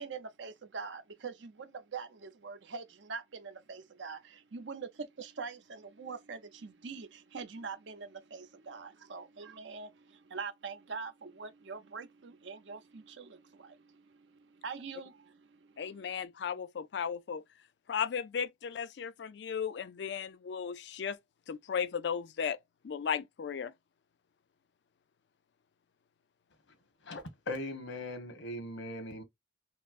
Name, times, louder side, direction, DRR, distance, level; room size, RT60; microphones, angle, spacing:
voice 1, 0.0-14.0 14.6-15.8, right 5 dB, 80° right, 0.7 m, -44 dB
voice 2, 15.8-17.4 17.9-21.2 21.5-22.6 22.8-23.7, left 7 dB, 65° left, 0.4 m, -35 dB
voice 3, 27.0-29.2, left 1 dB, 90° left, 1.2 m, -39 dB
5.3 x 2.0 x 2.4 m
head